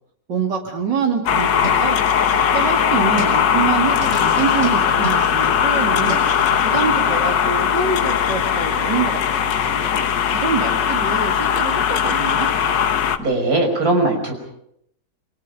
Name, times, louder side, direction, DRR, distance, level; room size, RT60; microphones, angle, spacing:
voice 1, 0.3-2.0 2.3-6.2 6.6-9.9 10.3-12.5, right 5 dB, 85° right, 1 dB, 3.3 m, -25 dB
sound 1, 1.2-6.7, right 1 dB, 40° right, 6.7 m, -34 dB
sound 2, 1.3-13.2, left 8 dB, 80° left, 1.8 m, -19 dB
voice 2, 13.2-14.4, right 2 dB, 55° right, 2 dB, 6.2 m, -19 dB
28.5 x 24.5 x 5.3 m, 0.74 s
omnidirectional pair, 1.9 m